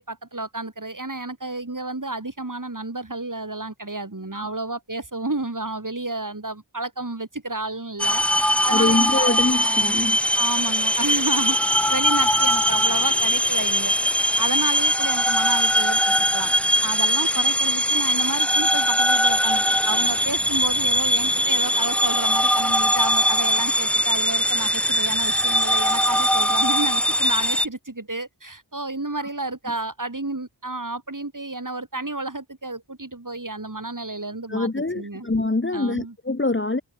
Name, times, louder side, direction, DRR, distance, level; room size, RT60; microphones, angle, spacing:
voice 1, 0.0-10.0 10.3-13.9 14.4-16.5 16.8-35.3 35.7-36.1, right 2 dB, 40° right, 7.9 m, -31 dB
sound 1, 8.0-27.7, equal, 5° left, 1.9 m, -21 dB
voice 2, 8.7-10.2 34.5-36.8, left 2 dB, 25° left, 1.4 m, -24 dB
wide cardioid pair, 60°, 48 cm